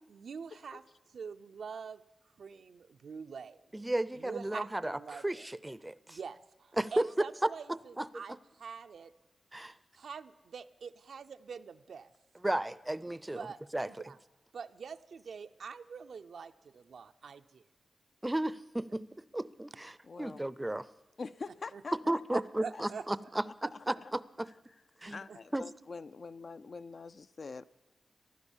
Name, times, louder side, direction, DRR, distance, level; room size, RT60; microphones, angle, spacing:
voice 1, 0.1-0.8 1.1-2.0 2.4-3.6 4.2-5.5 6.1-9.1 10.0-12.1 13.3-13.6 13.9-14.2 14.5-17.6 21.7-21.8 22.3-23.1 25.0-25.4, right 6 dB, 80° right, 9 dB, 0.5 m, -45 dB
voice 2, 3.7-6.2 6.8-7.1 7.4-8.1 9.5-9.7 12.4-13.5 13.7-13.9 18.2-19.0 19.3-20.9 22.1-24.5 25.0-25.2 25.5-25.6, right 1 dB, 15° right, 18 dB, 0.5 m, -34 dB
voice 3, 20.0-20.4 21.2-22.4 22.7-22.8 23.5-23.6 24.0-24.1 25.1-27.6, left 4 dB, 60° left, 13 dB, 0.4 m, -44 dB
14.5 x 11.5 x 7.2 m, 1.1 s
cardioid pair, 75°, 0 cm